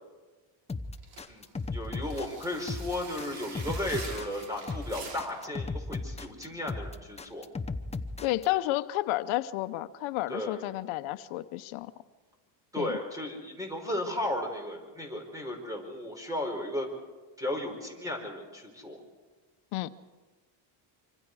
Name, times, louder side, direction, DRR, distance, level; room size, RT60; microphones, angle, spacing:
sound 1, 0.7-8.5, left 3 dB, 15° left, 0.8 m, -36 dB
sound 2, 1.0-5.5, right 4 dB, 60° right, 7.0 m, -45 dB
voice 1, 1.7-7.5 10.3-10.6 12.7-16.9 17.4-19.0, left 1 dB, 5° right, 5.2 m, -35 dB
voice 2, 8.2-11.9 12.8-12.9 19.7-19.9, left 16 dB, 90° left, 0.9 m, -31 dB
25.5 x 25.5 x 4.8 m
cardioid pair, 135°, 48 cm